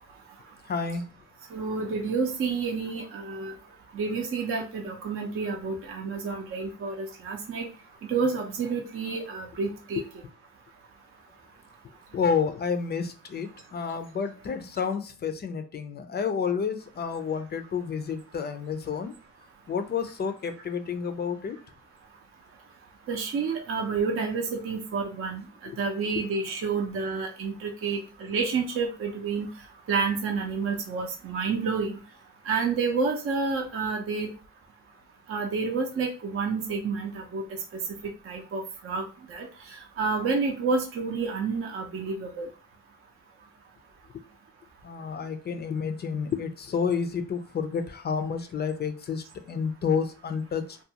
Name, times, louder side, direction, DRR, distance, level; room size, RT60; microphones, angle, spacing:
voice 1, 0.7-1.0 10.0-10.1 12.1-19.1 19.7-21.6 25.7-25.8 44.8-50.8, left 6 dB, 35° left, 8 dB, 0.4 m, -30 dB
voice 2, 1.5-3.5 3.9-7.7 8.1-10.0 23.1-25.4 25.8-29.5 29.9-32.0 32.5-34.3 35.3-37.4 38.3-39.0 39.3-39.5 40.0-42.5, right 4 dB, 45° right, 2 dB, 0.6 m, -29 dB
2.4 x 2.3 x 2.7 m, 0.37 s
cardioid pair, 90°, 30 cm